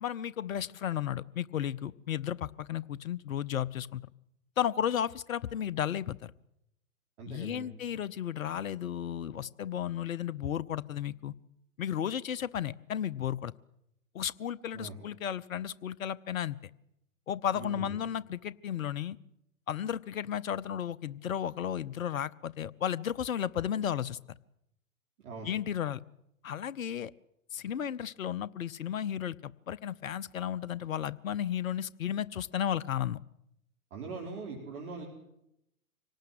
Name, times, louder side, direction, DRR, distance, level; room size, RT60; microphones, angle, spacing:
voice 1, 0.0-4.0 4.6-6.3 7.3-11.3 11.8-13.5 14.1-16.6 17.3-19.2 19.7-24.2 25.4-26.0 26.4-27.1 27.5-33.2, left 10 dB, 70° left, 18 dB, 0.9 m, -34 dB
voice 2, 7.2-7.7 14.7-15.0 17.5-18.0 25.2-25.5 33.9-35.0, right 3 dB, 55° right, -2 dB, 5.3 m, -41 dB
25.5 x 18.5 x 7.8 m, 0.81 s
figure-of-eight pair, 115°, 43 cm